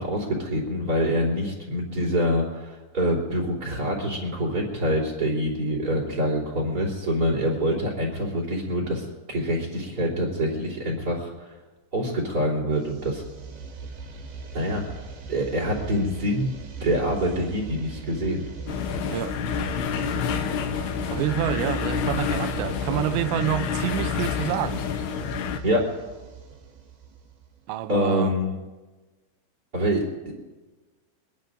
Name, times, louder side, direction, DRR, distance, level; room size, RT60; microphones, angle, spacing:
voice 1, 0.0-11.5 11.9-13.2 14.5-14.8 15.3-16.5 16.8-18.4 25.6-25.8 27.9-28.6 29.7-30.3, equal, 25° right, 3.6 m, -25 dB
sound 1, 12.8-27.6, right 6 dB, 60° right, 2.8 m, -39 dB
sound 2, 18.7-25.6, left 7 dB, 75° left, 2.8 m, -28 dB
voice 2, 19.1-19.4 21.1-24.9 27.7-28.3, right 13 dB, 85° right, 2.9 m, -28 dB
25.0 x 21.5 x 2.6 m
omnidirectional pair, 5.2 m